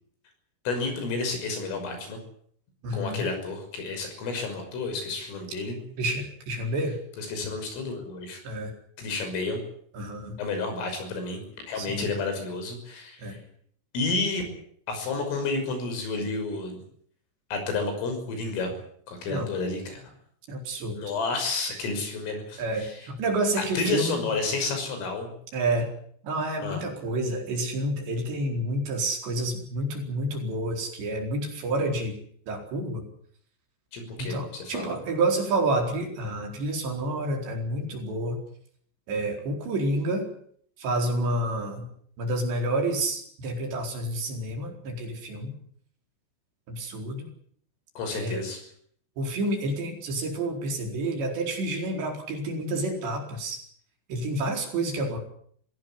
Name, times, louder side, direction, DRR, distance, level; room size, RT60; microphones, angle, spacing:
voice 1, 0.7-2.2 2.9-5.8 7.2-8.4 9.0-9.6 10.4-11.4 11.7-13.4 13.9-14.4 14.9-16.8 17.5-18.7 19.1-20.0 20.9-22.9 23.6-25.3 26.6-26.8 33.9-35.0 48.0-48.6, left 3 dB, 80° left, 6 dB, 8.5 m, -30 dB
voice 2, 2.8-3.2 6.0-7.0 8.4-8.7 9.9-10.4 11.8-12.1 13.2-13.4 19.3-19.5 20.5-21.0 22.6-24.3 25.5-25.9 26.2-32.1 32.5-33.0 34.2-38.4 39.1-40.3 40.8-41.9 42.2-45.5 46.7-47.3 48.1-48.4 49.2-53.6 54.1-55.2, right 1 dB, 60° right, 2 dB, 6.5 m, -29 dB
23.5 x 17.0 x 9.6 m, 0.63 s
omnidirectional pair, 5.8 m